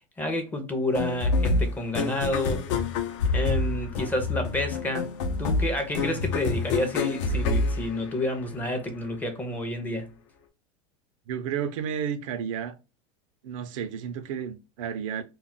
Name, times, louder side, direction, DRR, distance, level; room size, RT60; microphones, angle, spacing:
voice 1, 0.2-2.7 3.3-5.1 5.4-10.1, left 1 dB, 10° left, 0.5 m, -29 dB
sound 1, 0.9-8.6, left 3 dB, 70° left, 0.6 m, -27 dB
voice 2, 11.3-12.8 13.4-15.2, right 8 dB, 80° right, 0.5 m, -32 dB
2.3 x 2.0 x 3.7 m
supercardioid pair, 140°, 17 cm